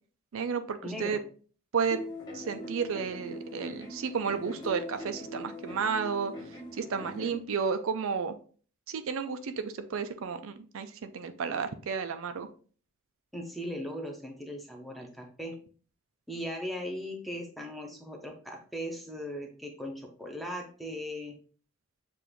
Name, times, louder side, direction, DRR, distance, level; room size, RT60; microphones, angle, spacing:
voice 1, 0.3-1.2 1.7-2.0 2.3-8.4 8.9-12.5, right 6 dB, 65° right, 8 dB, 0.4 m, -32 dB
voice 2, 0.8-1.2 13.3-15.6 16.3-21.4, equal, ahead, 1 dB, 0.7 m, -38 dB
sound 1, 1.9-7.4, left 1 dB, 20° left, 1.0 m, -42 dB
6.8 x 2.5 x 3.1 m, 0.41 s
head